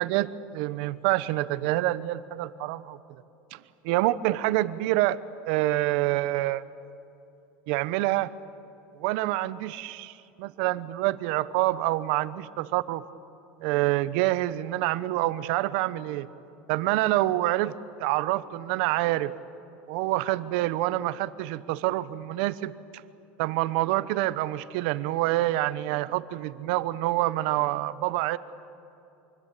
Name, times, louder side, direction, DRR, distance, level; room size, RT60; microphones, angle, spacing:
voice 1, 0.0-3.0 3.5-5.2 5.5-6.6 7.7-8.3 8.9-13.0 13.6-16.3 16.7-19.3 19.9-23.0 23.4-28.4, right 16 dB, 65° right, 15 dB, 0.9 m, -27 dB
25.0 x 24.0 x 8.4 m, 2.8 s
supercardioid pair, 140°, 6 cm